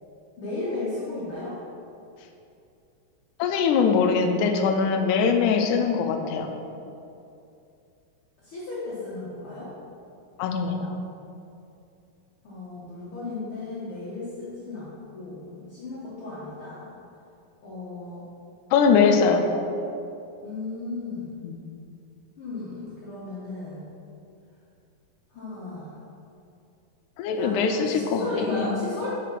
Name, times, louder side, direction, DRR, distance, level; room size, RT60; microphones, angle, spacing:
voice 1, 0.4-1.6 8.4-9.7 12.4-16.9 17.6-18.2 20.4-21.3 22.4-23.8 25.3-26.0 27.3-27.6 27.9-29.1, left 2 dB, 65° left, -9 dB, 1.4 m, -35 dB
voice 2, 3.4-6.5 10.4-11.0 18.7-19.4 21.4-21.6 27.2-28.8, left 5 dB, 80° left, 5 dB, 1.8 m, -22 dB
6.4 x 5.0 x 5.7 m, 2.6 s
omnidirectional pair, 4.0 m